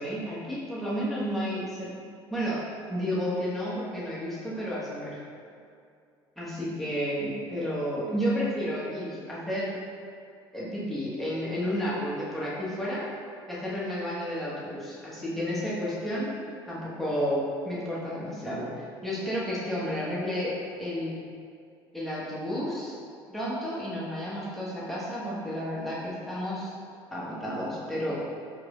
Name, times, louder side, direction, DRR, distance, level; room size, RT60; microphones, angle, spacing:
voice 1, 0.0-1.9 2.3-2.6 2.9-5.2 6.4-9.8 10.5-13.1 13.5-16.4 16.7-20.5 20.8-21.2 21.9-23.0 23.3-26.7 27.1-28.2, equal, ahead, -8 dB, 1.3 m, -31 dB
4.6 x 3.2 x 2.4 m, 2.4 s
figure-of-eight pair, 60°, 13 cm